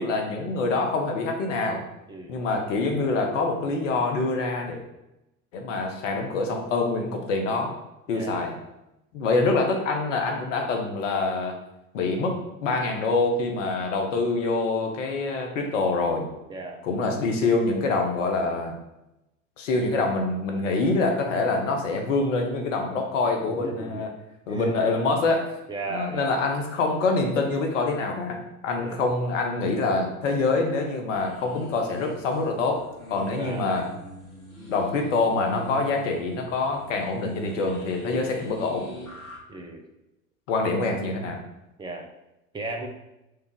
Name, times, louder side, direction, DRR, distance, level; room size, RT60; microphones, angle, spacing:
voice 1, 0.0-1.8 2.3-4.8 5.5-7.8 8.1-8.5 9.1-11.5 11.9-16.3 16.8-18.8 19.6-24.1 24.5-25.5 25.9-33.8 34.7-38.9 40.5-41.4, left 3 dB, 60° left, 2 dB, 1.0 m, -25 dB
voice 2, 2.1-2.4 8.1-8.5 16.5-16.8 23.6-24.1 24.5-24.8 25.7-26.4 28.8-29.2 33.3-33.8 39.5-39.9 41.8-42.1 42.5-42.9, right 2 dB, 10° right, 3 dB, 0.6 m, -35 dB
sound 1, 31.1-39.4, right 1 dB, 85° left, 1.3 m, -42 dB
4.7 x 2.5 x 4.5 m, 0.90 s
figure-of-eight pair, 75°, 42 cm